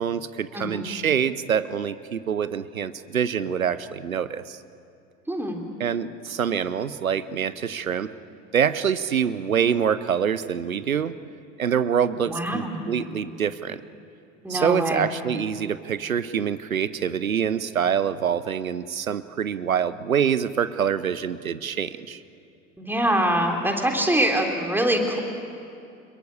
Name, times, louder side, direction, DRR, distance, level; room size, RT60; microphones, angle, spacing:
voice 1, 0.0-4.6 5.8-8.1 8.5-11.1 11.6-13.8 14.5-22.2, right 8 dB, 85° right, 15 dB, 0.8 m, -25 dB
voice 2, 0.5-0.9 5.3-5.6 12.3-12.9 14.4-15.1 22.8-25.2, right 1 dB, 5° right, 2 dB, 3.4 m, -24 dB
26.0 x 22.0 x 8.4 m, 2.6 s
figure-of-eight pair, 70°, 40 cm